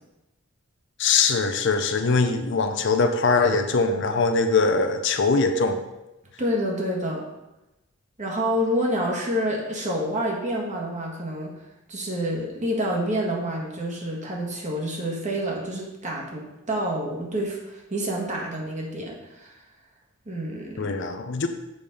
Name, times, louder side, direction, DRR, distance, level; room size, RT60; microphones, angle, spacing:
voice 1, 1.0-5.8 20.8-21.5, left 4 dB, 60° left, 7 dB, 0.6 m, -22 dB
voice 2, 6.4-7.3 8.2-11.5 11.9-19.5 20.3-21.0, equal, 35° right, -2 dB, 1.7 m, -28 dB
7.2 x 5.1 x 5.3 m, 0.98 s
head